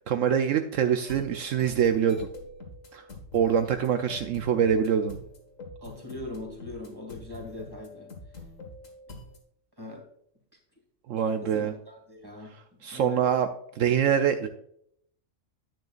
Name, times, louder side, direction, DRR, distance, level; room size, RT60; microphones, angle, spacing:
voice 1, 0.1-2.3 2.9-3.0 3.3-5.2 11.1-11.7 12.8-13.5 13.8-14.5, right 8 dB, 75° right, 7 dB, 1.0 m, -24 dB
sound 1, 1.0-9.4, left 2 dB, 70° left, 2.1 m, -45 dB
voice 2, 5.8-8.1 9.8-10.1 11.2-12.5 12.8-13.2, left 2 dB, 15° right, 1 dB, 2.3 m, -41 dB
10.0 x 9.1 x 2.4 m, 0.69 s
omnidirectional pair, 1.4 m